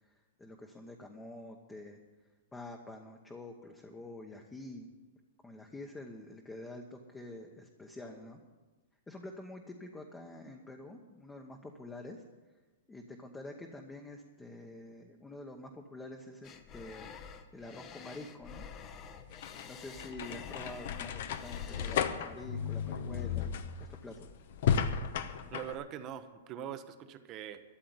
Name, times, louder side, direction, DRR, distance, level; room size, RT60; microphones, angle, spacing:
voice 1, 0.0-2.0 2.5-4.9 5.4-8.4 9.1-12.2 12.9-18.6 19.6-23.5 24.0-24.3, left 2 dB, 10° left, 2 dB, 1.0 m, -47 dB
sound 1, 16.4-22.1, left 6 dB, 25° left, 0.9 m, -49 dB
sound 2, 19.0-25.7, left 7 dB, 65° left, 0.9 m, -34 dB
voice 2, 25.5-27.6, right 10 dB, 30° right, 10 dB, 0.8 m, -42 dB
13.0 x 7.5 x 9.4 m, 1.2 s
hypercardioid pair, 145°, 0 cm